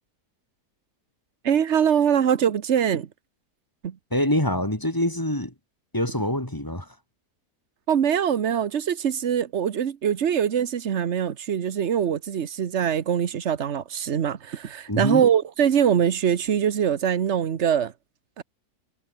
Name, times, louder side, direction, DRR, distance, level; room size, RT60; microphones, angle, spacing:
voice 1, 1.4-3.1 3.8-4.0 7.9-17.9 18.4-18.5, right 8 dB, 50° right, 1.2 m, -23 dB
voice 2, 4.1-5.5 5.9-6.9 14.9-15.2, left 1 dB, 10° left, 3.0 m, -25 dB
omnidirectional pair, 1.8 m